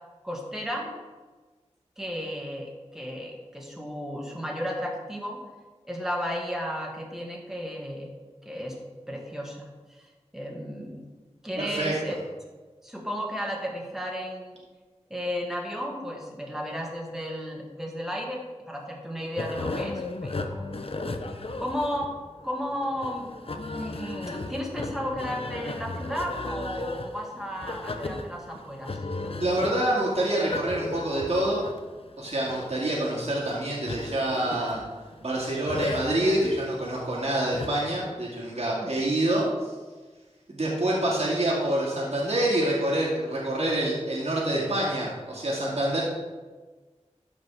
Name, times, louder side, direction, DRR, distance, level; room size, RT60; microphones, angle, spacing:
voice 1, 0.2-0.9 2.0-5.4 5.8-8.1 8.4-8.8 9.1-9.6 9.9-11.0 11.4-12.2 12.8-14.6 15.1-22.1 22.4-29.0 29.2-29.3 38.8-38.9, equal, 5° right, -1 dB, 2.2 m, -34 dB
voice 2, 11.6-11.9 29.4-31.6 32.2-34.8 35.2-39.7 40.5-46.0, right 1 dB, 60° right, -5 dB, 2.2 m, -26 dB
sound 1, 19.4-38.0, left 2 dB, 50° left, 0.7 m, -36 dB
13.0 x 5.3 x 3.7 m, 1.3 s
wide cardioid pair, 55°, 12 cm